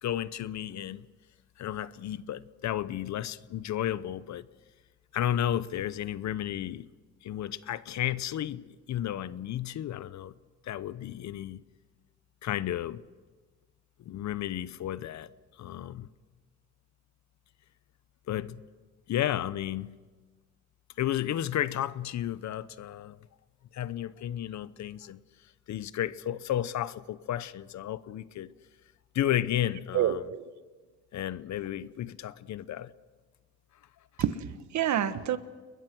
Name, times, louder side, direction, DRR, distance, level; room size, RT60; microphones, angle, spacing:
voice 1, 0.0-1.1 1.6-4.5 5.1-6.9 7.2-10.3 10.6-11.6 12.4-13.0 14.0-15.3 15.6-16.1 18.3-18.6 19.1-20.0 21.0-23.3 23.7-25.2 25.7-28.5 29.1-30.2 31.1-32.9, left 11 dB, 65° left, 0.9 m, -33 dB
voice 2, 29.9-30.4 34.2-35.4, right 10 dB, 70° right, 1.5 m, -28 dB
30.0 x 21.0 x 6.2 m
cardioid pair, 90°, 30 cm